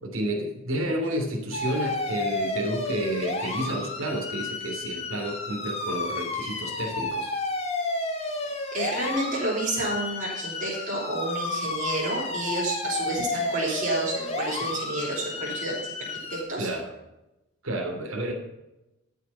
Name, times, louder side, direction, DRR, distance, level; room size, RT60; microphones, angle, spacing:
voice 1, 0.0-7.3 16.6-16.9 17.6-18.3, right 1 dB, 65° right, 1 dB, 3.0 m, -30 dB
sound 1, 1.5-16.4, left 2 dB, 30° left, 2.0 m, -32 dB
voice 2, 8.7-15.9 16.3-16.7, right 2 dB, 40° right, -9 dB, 4.7 m, -30 dB
13.0 x 7.6 x 5.6 m, 0.94 s
head